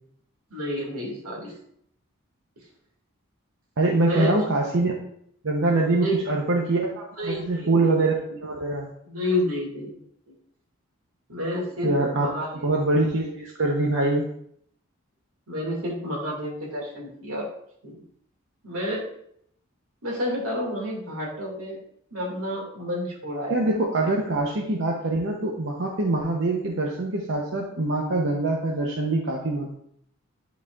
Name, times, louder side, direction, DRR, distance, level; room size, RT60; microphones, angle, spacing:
voice 1, 0.5-1.6 4.0-4.4 5.9-6.2 7.2-7.9 9.0-9.9 11.3-12.5 15.5-17.5 17.8-18.0 18.6-19.1 20.0-21.8 22.1-23.7, equal, 90° right, -2 dB, 2.2 m, -30 dB
voice 2, 3.8-4.9 5.4-8.9 11.8-12.3 12.6-14.3 23.5-29.7, right 2 dB, 60° right, -1 dB, 0.8 m, -24 dB
11.0 x 4.1 x 2.4 m, 0.69 s
head